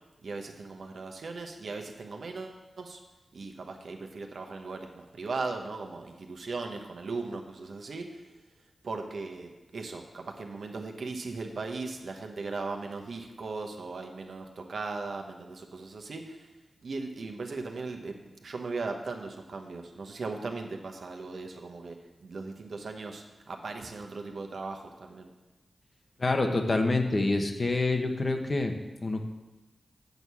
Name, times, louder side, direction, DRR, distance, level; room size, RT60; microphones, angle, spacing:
voice 1, 0.2-3.0 3.3-8.2 8.8-16.4 16.8-25.3, right 3 dB, 75° right, 3 dB, 1.0 m, -38 dB
voice 2, 26.2-29.2, left 2 dB, 45° left, 5 dB, 1.0 m, -27 dB
8.0 x 4.6 x 6.9 m, 1.1 s
cardioid pair, 55°, 0 cm